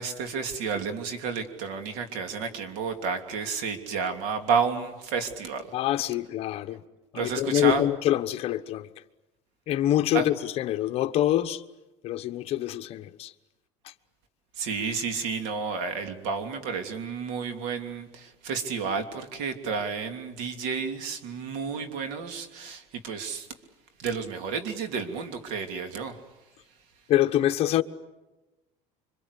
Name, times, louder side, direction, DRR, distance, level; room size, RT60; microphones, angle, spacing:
voice 1, 0.0-5.6 7.1-7.8 10.1-10.2 14.6-23.5 24.0-26.1, right 5 dB, 80° right, 3.1 m, -31 dB
voice 2, 5.7-6.8 7.1-8.9 9.7-11.6 12.0-13.3 27.1-27.8, left 12 dB, 45° left, 1.1 m, -25 dB
27.0 x 25.0 x 8.4 m
cardioid pair, 150°, 14 cm